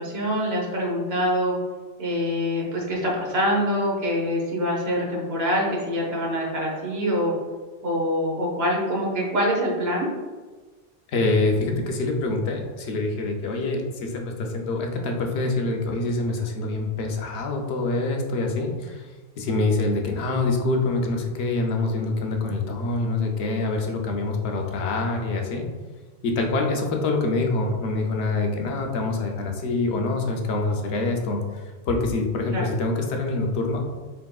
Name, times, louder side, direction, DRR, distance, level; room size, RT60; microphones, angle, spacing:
voice 1, 0.0-1.5 2.0-7.3 7.8-10.1 32.5-32.7, equal, 70° right, -2 dB, 1.2 m, -25 dB
voice 2, 11.1-19.1 19.4-25.7 26.2-33.8, left 2 dB, 80° left, 2 dB, 0.9 m, -25 dB
4.0 x 3.6 x 2.3 m, 1.3 s
omnidirectional pair, 1.1 m